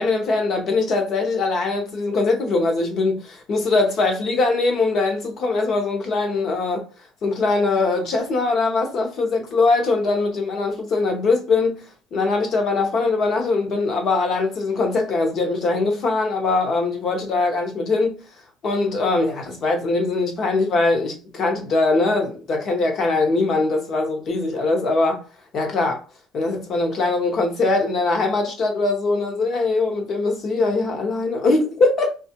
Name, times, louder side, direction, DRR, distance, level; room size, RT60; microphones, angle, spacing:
voice 1, 0.0-6.8 7.2-11.8 12.1-18.1 18.6-25.2 25.5-26.0 26.3-32.1, left 3 dB, 35° left, 0.8 m, -21 dB
5.3 x 2.3 x 2.8 m
cardioid pair, 170°, 0 cm